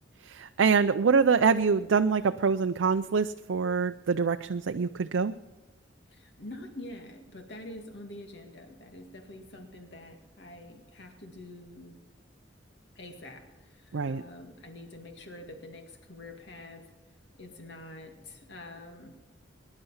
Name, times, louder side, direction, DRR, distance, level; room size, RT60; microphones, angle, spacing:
voice 1, 0.2-5.3 13.9-14.2, right 5 dB, 85° right, 8 dB, 0.5 m, -25 dB
voice 2, 6.1-12.0 13.0-16.9 17.3-19.1, left 1 dB, 65° left, 4 dB, 2.1 m, -46 dB
21.5 x 11.0 x 5.6 m, 1.1 s
head